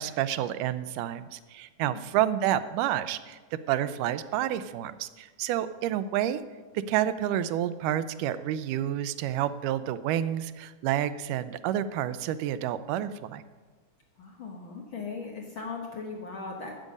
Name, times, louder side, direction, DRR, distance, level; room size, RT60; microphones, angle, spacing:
voice 1, 0.0-3.4 3.7-6.4 6.9-13.4, right 11 dB, 90° right, 13 dB, 2.1 m, -29 dB
voice 2, 14.2-16.8, left 4 dB, 55° left, 0 dB, 1.5 m, -38 dB
12.5 x 8.3 x 5.3 m, 1.3 s
omnidirectional pair, 3.6 m